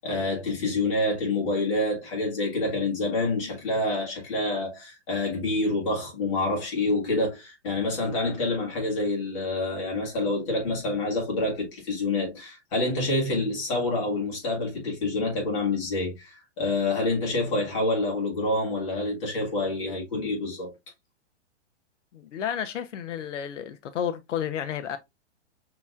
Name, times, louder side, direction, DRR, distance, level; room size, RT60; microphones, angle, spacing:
voice 1, 0.0-20.7, left 2 dB, 25° left, 1.5 m, -27 dB
voice 2, 22.1-25.0, left 9 dB, 85° left, 0.8 m, -31 dB
5.6 x 3.0 x 2.4 m
hypercardioid pair, 180°, 36 cm